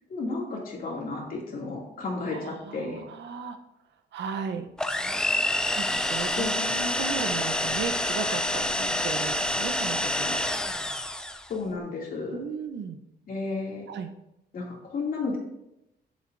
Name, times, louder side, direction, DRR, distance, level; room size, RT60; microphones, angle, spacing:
voice 1, 0.1-3.0 6.4-6.8 11.5-12.4 13.3-13.9 14.5-15.4, left 3 dB, 50° left, -2 dB, 2.7 m, -32 dB
voice 2, 2.3-3.6 4.1-4.7 5.8-10.4 12.3-13.0 13.9-14.1, right 6 dB, 80° right, 7 dB, 0.9 m, -35 dB
sound 1, 4.8-11.5, left 1 dB, 5° left, 0.5 m, -27 dB
11.5 x 8.6 x 2.7 m, 0.85 s
wide cardioid pair, 160°, 18 cm